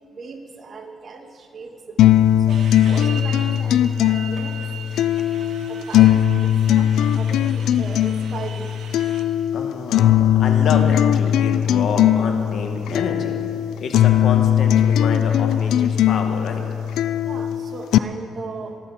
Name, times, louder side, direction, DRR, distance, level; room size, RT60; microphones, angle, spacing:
voice 1, 0.1-2.0 2.4-2.6 2.8-4.7 5.7-6.1 6.4-8.7 12.9-13.0 16.5-16.8 17.2-18.8, right 4 dB, 50° right, 2 dB, 2.3 m, -37 dB
sound 1, 2.0-18.0, left 11 dB, 80° left, 0.4 m, -19 dB
sound 2, 2.5-9.2, right 6 dB, 65° right, 1.5 m, -39 dB
voice 2, 9.5-13.4 13.8-16.6, left 4 dB, 65° left, 3 dB, 2.0 m, -28 dB
28.0 x 11.5 x 4.4 m, 2.5 s
cardioid pair, 90°, 0 cm